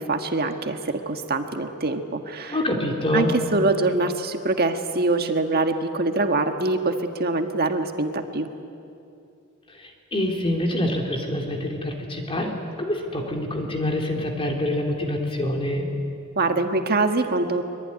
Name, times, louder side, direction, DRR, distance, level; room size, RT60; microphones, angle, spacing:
voice 1, 0.0-2.6 3.1-8.5 16.3-17.6, right 2 dB, 45° right, 5 dB, 1.6 m, -24 dB
voice 2, 2.5-3.3 9.7-12.5 12.8-15.9, left 1 dB, 25° left, 2 dB, 3.1 m, -26 dB
24.5 x 22.5 x 9.8 m, 2.6 s
head